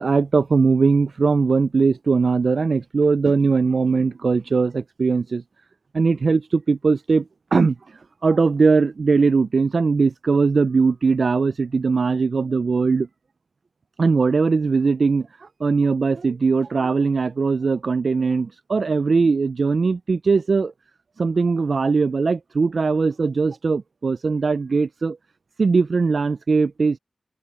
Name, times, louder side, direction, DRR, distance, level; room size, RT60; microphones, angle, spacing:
voice 1, 0.0-5.4 5.9-7.2 7.5-7.8 8.2-13.1 14.0-15.3 15.6-20.7 21.2-25.2 25.6-27.0, right 4 dB, 65° right, 0.3 m, -20 dB
open air
wide cardioid pair, 85°, 0 cm